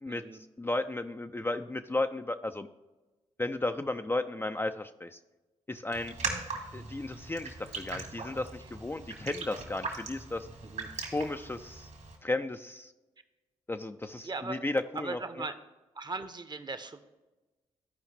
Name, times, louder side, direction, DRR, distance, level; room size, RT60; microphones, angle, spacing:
voice 1, 0.1-0.4 8.6-8.7 10.6-10.9 14.2-14.6 14.9-15.5 15.9-17.0, right 3 dB, 30° right, 11 dB, 0.8 m, -39 dB
voice 2, 0.6-2.7 3.4-5.2 5.7-6.1 6.7-10.5 11.1-11.9 12.2-12.9 13.7-15.2, left 2 dB, 15° left, 8 dB, 0.4 m, -34 dB
Raindrop, 5.9-12.2, right 4 dB, 65° right, 2.1 m, -40 dB
13.5 x 4.9 x 3.3 m, 1.1 s
supercardioid pair, 45°, 14 cm